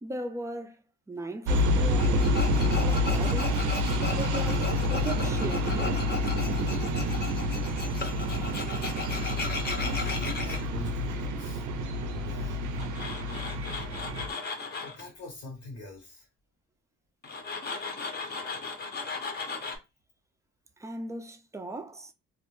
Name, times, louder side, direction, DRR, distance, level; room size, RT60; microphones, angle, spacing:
voice 1, 0.0-0.8 1.1-3.6 4.1-6.0 20.8-22.1, right 1 dB, 10° right, 0.3 m, -38 dB
sound 1, 1.5-14.3, left 1 dB, 85° right, 0.5 m, -28 dB
Tools, 2.0-10.6 12.7-15.0 17.2-19.8, left 4 dB, 35° left, 0.6 m, -36 dB
voice 2, 9.7-11.7 12.1-12.7 14.8-16.3, left 1 dB, 80° left, 1.1 m, -43 dB
2.4 x 2.0 x 3.0 m
cardioid pair, 90°, 30 cm